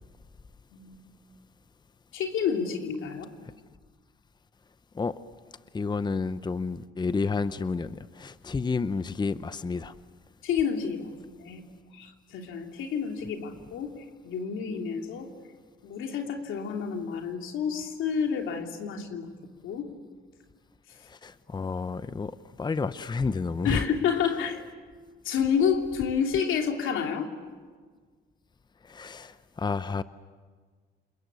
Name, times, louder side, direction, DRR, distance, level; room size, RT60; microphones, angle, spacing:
voice 1, 0.7-1.0 2.1-3.3 10.4-11.6 11.9-13.9 14.2-15.3 15.8-19.3 19.6-19.9 23.6-24.6 25.2-27.3, left 7 dB, 85° left, 2.9 m, -29 dB
voice 2, 5.7-9.9 21.2-22.3 22.6-23.8 28.9-30.0, left 4 dB, 20° left, 0.7 m, -30 dB
28.5 x 21.5 x 8.4 m
cardioid pair, 90°, 20 cm